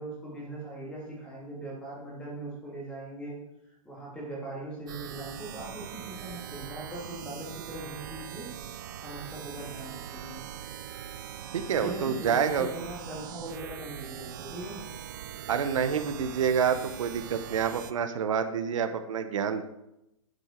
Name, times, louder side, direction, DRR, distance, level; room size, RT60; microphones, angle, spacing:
voice 1, 0.0-3.4 3.6-8.5 9.0-10.4 11.8-14.9, right 1 dB, 5° left, -4 dB, 2.5 m, -40 dB
sound 1, 4.9-17.9, right 10 dB, 35° right, 0.5 m, -42 dB
voice 2, 11.5-12.7 15.5-19.6, right 7 dB, 65° right, 9 dB, 0.9 m, -28 dB
9.5 x 8.0 x 4.5 m, 0.87 s
hypercardioid pair, 170°, 18 cm